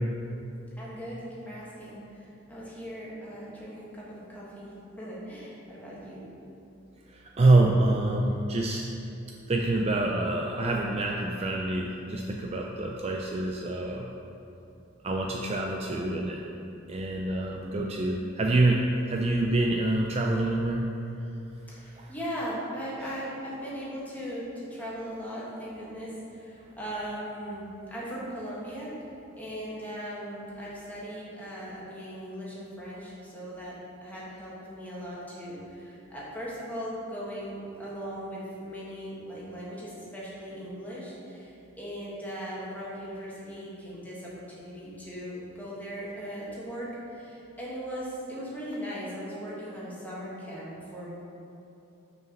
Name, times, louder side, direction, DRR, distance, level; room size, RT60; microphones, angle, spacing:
voice 1, 0.8-2.2 2.5-6.3 21.7-28.9 29.4-51.1, equal, 10° left, -7 dB, 1.5 m, -38 dB
voice 2, 7.1-8.8 9.5-14.1 15.0-16.4 16.9-20.9 22.0-22.1, right 2 dB, 30° right, 0 dB, 0.4 m, -26 dB
6.3 x 4.7 x 5.9 m, 2.8 s
head